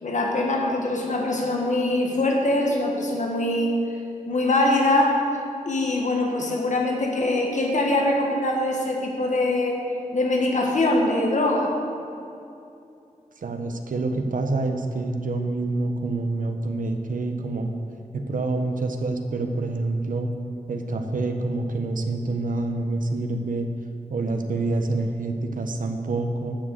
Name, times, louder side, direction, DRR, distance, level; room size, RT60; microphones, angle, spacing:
voice 1, 0.0-3.7 4.3-5.4 5.6-9.8 10.1-11.8, left 2 dB, 65° left, 0 dB, 1.4 m, -23 dB
voice 2, 13.4-17.7 18.1-20.3 20.7-23.7 24.1-26.6, right 2 dB, 80° right, 5 dB, 1.0 m, -27 dB
11.5 x 6.4 x 8.0 m, 2.6 s
wide cardioid pair, 120°, 14 cm